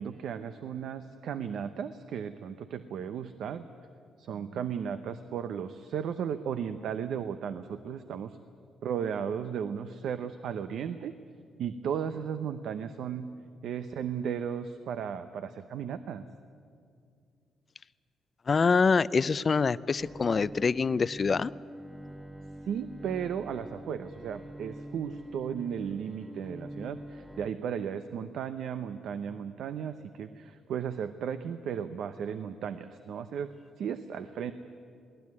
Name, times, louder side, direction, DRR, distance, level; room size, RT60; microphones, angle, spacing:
voice 1, 0.0-3.7 4.2-8.4 8.8-11.1 11.6-13.3 13.6-16.2 22.6-33.5 33.8-34.5, right 8 dB, 70° right, 10 dB, 0.8 m, -35 dB
voice 2, 18.5-21.5, left 5 dB, 40° left, 18 dB, 0.5 m, -25 dB
Bowed string instrument, 20.0-27.5, right 1 dB, 15° right, 1.2 m, -45 dB
20.0 x 18.5 x 9.6 m, 2.3 s
cardioid pair, 90°, 0 cm